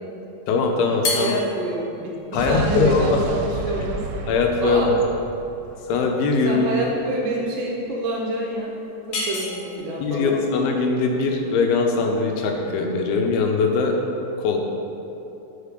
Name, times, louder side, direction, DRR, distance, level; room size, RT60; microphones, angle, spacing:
voice 1, 0.5-1.3 2.3-3.2 4.3-5.0 5.9-6.7 10.0-14.0 14.4-14.6, left 4 dB, 85° left, 2 dB, 2.7 m, -21 dB
sound 1, 0.9-13.3, left 3 dB, 70° left, 1.5 m, -35 dB
voice 2, 1.1-4.0 4.6-5.0 6.4-8.7 9.1-10.3, right 1 dB, 75° right, -2 dB, 2.2 m, -27 dB
Explosion, 2.4-6.5, right 4 dB, 90° right, 2.4 m, -32 dB
5.8 x 4.9 x 6.6 m, 2.9 s
omnidirectional pair, 4.3 m